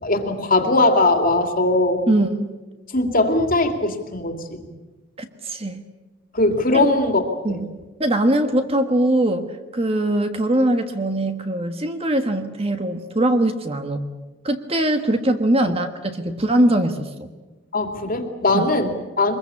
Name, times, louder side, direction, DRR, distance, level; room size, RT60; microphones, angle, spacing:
voice 1, 0.0-2.1 2.9-4.7 6.3-7.2 7.5-7.6 15.6-15.7 17.7-19.4, left 2 dB, 40° left, 5 dB, 2.7 m, -20 dB
voice 2, 2.1-2.5 5.2-5.8 6.7-6.9 7.4-7.7 8.0-9.5 9.7-14.0 14.4-17.3 18.5-18.7, right 1 dB, 30° right, 7 dB, 1.5 m, -21 dB
24.5 x 21.5 x 8.5 m, 1.2 s
head